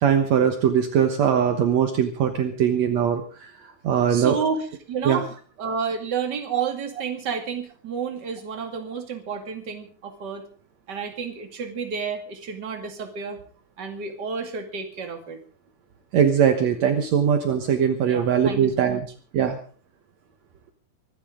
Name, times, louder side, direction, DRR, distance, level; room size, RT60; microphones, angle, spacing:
voice 1, 0.0-3.5 3.8-4.4 5.1-5.2 6.5-6.6 16.1-19.0 19.3-19.6, right 8 dB, 65° right, 6 dB, 2.3 m, -21 dB
voice 2, 4.1-5.3 5.6-10.4 10.9-13.4 13.8-15.4 18.1-19.0, right 6 dB, 35° right, 4 dB, 2.6 m, -30 dB
24.5 x 12.5 x 3.8 m, 0.40 s
omnidirectional pair, 3.6 m